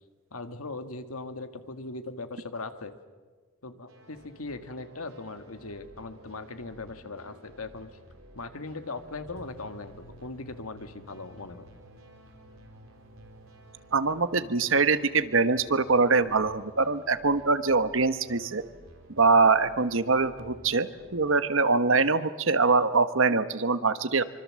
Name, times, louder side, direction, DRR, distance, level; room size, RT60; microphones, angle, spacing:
voice 1, 0.3-2.9 3.6-7.9 8.3-11.6, left 3 dB, 90° left, 9 dB, 1.8 m, -39 dB
sound 1, 3.9-21.3, right 1 dB, 80° right, 4.5 m, -53 dB
sound 2, 9.4-17.5, right 1 dB, 45° left, 2.2 m, -57 dB
voice 2, 13.9-18.6 19.2-24.2, right 4 dB, 65° right, 12 dB, 1.1 m, -23 dB
25.0 x 24.5 x 7.6 m, 1.4 s
head